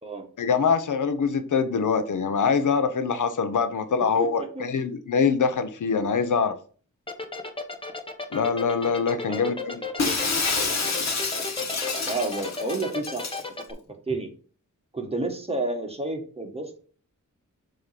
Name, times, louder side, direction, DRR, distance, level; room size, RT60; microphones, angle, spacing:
voice 1, 0.4-6.5 8.3-9.8, left 5 dB, 70° left, 0.8 m, -24 dB
voice 2, 4.2-4.7 9.2-9.5 10.0-10.4 12.1-13.3 14.1-14.3 14.9-16.8, right 2 dB, 20° right, 1.5 m, -31 dB
sound 1, 7.1-13.7, left 3 dB, 15° left, 1.0 m, -34 dB
Shatter, 10.0-13.4, left 4 dB, 55° left, 1.4 m, -28 dB
7.3 x 3.0 x 4.8 m
wide cardioid pair, 85°, 32 cm